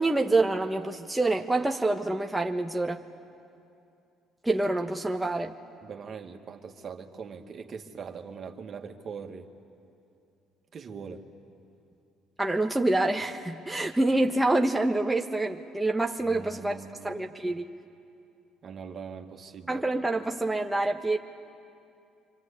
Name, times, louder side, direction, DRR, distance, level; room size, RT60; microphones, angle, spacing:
voice 1, 0.0-3.0 4.4-5.6 12.4-16.8 17.0-17.7 19.7-21.2, right 2 dB, 10° right, 1 dB, 1.4 m, -26 dB
voice 2, 5.8-9.5 10.7-11.2 16.2-17.2 18.6-19.8, right 6 dB, 50° right, 4 dB, 2.1 m, -41 dB
26.5 x 24.5 x 8.6 m, 2.6 s
hypercardioid pair, 65°, 0 cm